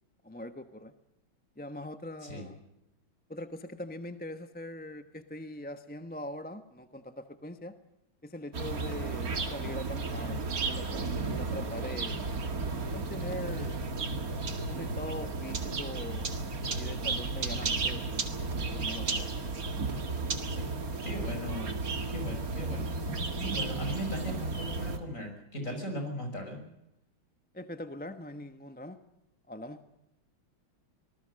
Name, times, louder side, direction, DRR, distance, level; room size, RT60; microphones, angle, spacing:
voice 1, 0.2-0.9 1.6-2.6 3.3-7.7 8.2-12.2 12.9-13.9 14.6-16.3 16.6-19.4 27.5-29.0 29.5-29.8, left 1 dB, 5° left, 9 dB, 0.7 m, -42 dB
sound 1, 8.5-25.0, right 3 dB, 45° right, 2.3 m, -33 dB
voice 2, 21.0-21.8 22.1-22.9 23.2-26.6, left 1 dB, 40° left, 4 dB, 6.3 m, -38 dB
26.0 x 20.0 x 6.5 m, 0.86 s
omnidirectional pair, 2.2 m